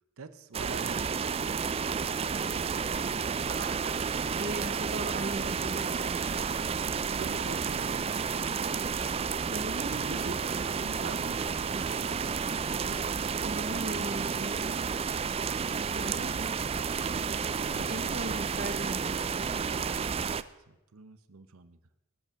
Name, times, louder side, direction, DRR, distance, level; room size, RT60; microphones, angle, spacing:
voice 1, 0.2-1.8 7.1-10.4 10.7-13.1 14.0-15.2 17.7-18.6 20.7-21.8, right 3 dB, 90° right, 12 dB, 0.8 m, -48 dB
sound 1, 0.5-20.4, right 6 dB, 30° right, 0.3 m, -31 dB
voice 2, 3.5-3.9 4.4-6.4 9.5-10.3 13.4-14.6 15.9-16.5 17.9-19.2, right 1 dB, 45° right, 10 dB, 0.8 m, -38 dB
19.0 x 6.9 x 5.9 m, 1.0 s
head